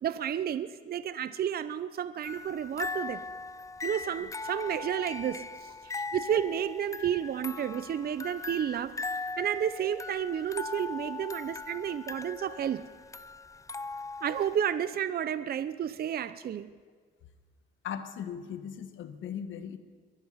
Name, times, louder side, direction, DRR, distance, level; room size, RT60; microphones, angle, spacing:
voice 1, 0.0-3.2 3.8-8.9 9.4-12.9 14.2-16.7, right 9 dB, 50° right, 14 dB, 0.6 m, -31 dB
sound 1, 2.2-14.5, left 3 dB, 15° left, 0.4 m, -39 dB
voice 2, 17.8-19.8, left 8 dB, 75° left, 8 dB, 1.4 m, -38 dB
22.5 x 11.5 x 5.6 m, 1.5 s
cardioid pair, 90°, 20 cm